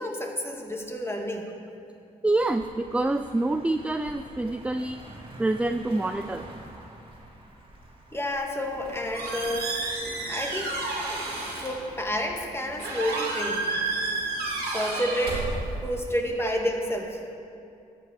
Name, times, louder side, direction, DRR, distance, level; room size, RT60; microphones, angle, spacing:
voice 1, 0.0-1.5 8.1-9.9 10.3-10.7 11.6-13.6 14.6-15.5 15.8-17.2, equal, 15° left, 1 dB, 1.7 m, -30 dB
voice 2, 2.2-5.0 5.4-6.5, right 2 dB, 10° right, 8 dB, 0.4 m, -26 dB
Car passing by, 2.4-9.9, right 1 dB, 30° right, 2.1 m, -47 dB
Squeak, 8.6-16.1, right 2 dB, 85° right, 2.4 m, -31 dB
12.5 x 7.6 x 4.9 m, 2.6 s
supercardioid pair, 60°, 16 cm